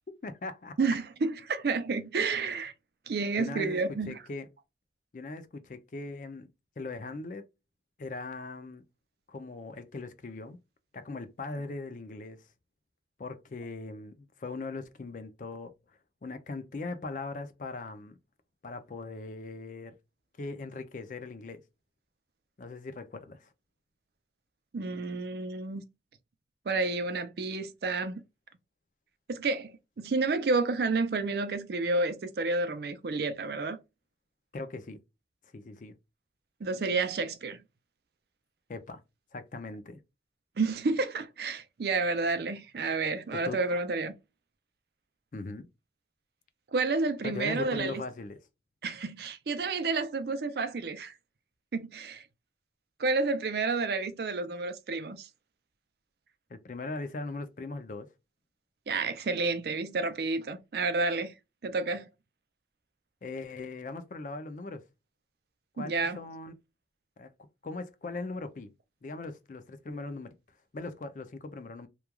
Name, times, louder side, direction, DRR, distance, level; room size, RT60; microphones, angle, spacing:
voice 1, 0.2-0.8 3.4-4.5 5.1-6.5 6.8-7.4 8.0-8.8 9.3-10.6 10.9-12.4 13.2-15.7 16.2-18.2 18.6-19.9 20.4-21.6 22.6-23.5 34.5-35.0 35.5-35.9 38.7-39.0 39.3-40.0 43.3-43.6 45.3-45.7 47.2-48.4 56.5-58.1 63.2-64.8 65.7-66.5 67.2-67.3 67.6-68.7 69.0-70.4 70.7-71.9, left 3 dB, 45° left, 0.4 m, -39 dB
voice 2, 0.8-2.7 3.1-4.2 24.7-25.8 26.7-28.2 29.3-33.8 36.6-37.6 40.6-44.1 46.7-48.0 48.8-51.1 51.7-52.2 53.0-55.3 58.9-61.3 61.6-62.1 65.8-66.2, right 3 dB, 60° right, 0.4 m, -30 dB
3.0 x 2.3 x 2.2 m
head